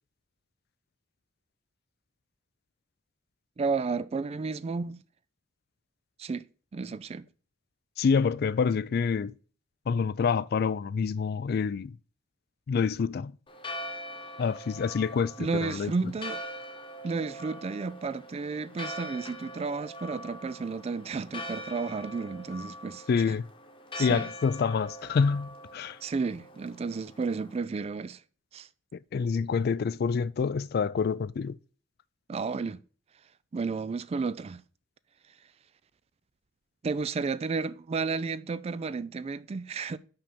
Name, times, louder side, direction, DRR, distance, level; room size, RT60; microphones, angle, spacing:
voice 1, 3.6-5.0 6.2-6.4 6.7-7.3 15.4-16.4 17.0-23.4 23.9-24.3 26.0-28.2 28.5-28.7 32.3-32.8 33.5-34.6 36.8-40.0, right 4 dB, 30° right, 0.3 m, -32 dB
voice 2, 8.0-9.3 9.9-11.9 12.7-13.3 14.4-15.9 23.1-23.4 24.0-26.0 29.1-31.6, left 5 dB, 50° left, 0.3 m, -27 dB
Church bell, 13.5-27.6, equal, 25° left, 1.0 m, -43 dB
5.8 x 5.5 x 5.2 m
head